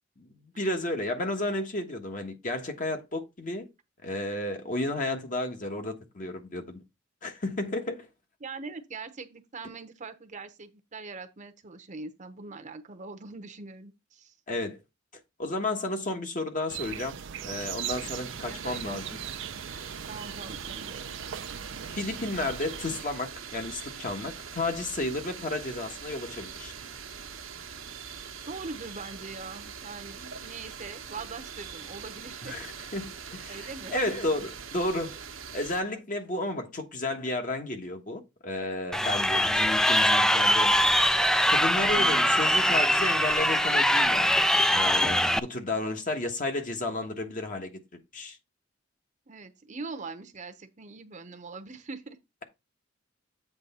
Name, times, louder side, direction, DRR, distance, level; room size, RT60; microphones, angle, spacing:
voice 1, 0.3-3.7 4.0-6.8 7.2-8.1 14.5-14.8 15.4-17.2 17.4-19.2 21.9-26.7 32.4-32.7 32.9-35.2 35.5-40.8 41.5-44.3 44.7-48.4, left 2 dB, 45° left, 1.3 m, -32 dB
voice 2, 8.4-14.4 18.0-19.2 20.1-21.1 28.4-32.6 33.5-34.0 39.0-39.1 49.3-52.2, right 4 dB, 40° right, 0.8 m, -42 dB
sound 1, 16.7-23.0, right 9 dB, 65° right, 0.5 m, -39 dB
sound 2, 17.9-35.8, right 6 dB, 80° right, 1.1 m, -42 dB
Crowd, 38.9-45.4, equal, 5° left, 0.3 m, -22 dB
8.1 x 3.4 x 5.4 m
head